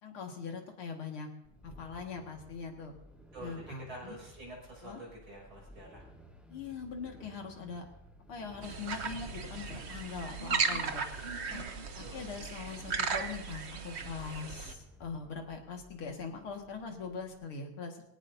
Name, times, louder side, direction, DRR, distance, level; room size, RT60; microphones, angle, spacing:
voice 1, 0.0-1.3 1.6-2.9 3.4-4.2 4.8-5.0 6.5-7.9 8.3-11.6 11.9-18.0, left 5 dB, 70° left, 2 dB, 2.8 m, -42 dB
sound 1, 1.4-17.4, equal, ahead, 1.7 m, -56 dB
voice 2, 3.3-6.0 11.8-12.3, right 1 dB, 65° right, -2 dB, 7.2 m, -47 dB
sound 2, 8.6-14.7, right 5 dB, 45° right, 0.9 m, -36 dB
23.5 x 17.5 x 2.7 m, 0.79 s
omnidirectional pair, 2.4 m